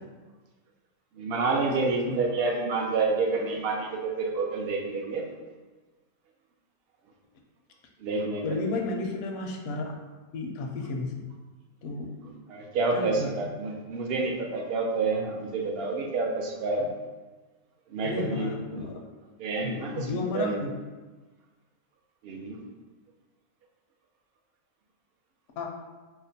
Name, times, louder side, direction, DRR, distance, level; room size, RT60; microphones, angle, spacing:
voice 1, 1.2-5.2 8.0-8.5 12.2-16.9 17.9-18.9 19.4-20.6 22.2-22.6, right 3 dB, 65° right, 1 dB, 0.6 m, -29 dB
voice 2, 1.8-2.2 8.4-9.9 10.3-11.1 11.8-12.1 12.9-13.3 18.0-19.0 19.6-20.7 25.6-25.7, left 3 dB, 65° left, 1 dB, 0.6 m, -33 dB
4.8 x 2.1 x 2.6 m, 1.3 s
omnidirectional pair, 1.5 m